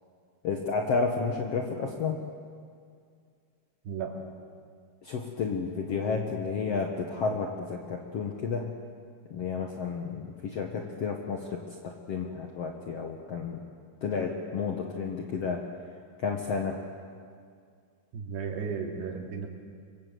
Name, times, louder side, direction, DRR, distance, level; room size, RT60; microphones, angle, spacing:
voice 1, 0.4-2.2 5.0-8.7 9.3-13.6 14.0-15.6 16.2-16.8, left 5 dB, 85° left, 2 dB, 1.3 m, -31 dB
voice 2, 18.1-19.5, right 6 dB, 70° right, 1 dB, 4.5 m, -34 dB
26.0 x 23.0 x 7.9 m, 2.2 s
omnidirectional pair, 5.1 m